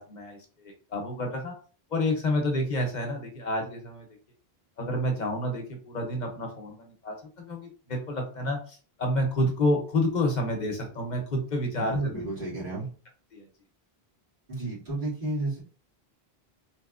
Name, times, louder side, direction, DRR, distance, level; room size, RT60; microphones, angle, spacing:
voice 1, 0.0-1.5 1.9-4.0 4.8-12.2 13.3-13.5, left 1 dB, 50° left, 3 dB, 0.8 m, -29 dB
voice 2, 11.8-12.9 14.5-15.6, right 2 dB, 55° right, -9 dB, 2.0 m, -31 dB
3.3 x 2.9 x 2.4 m, 0.39 s
omnidirectional pair, 1.1 m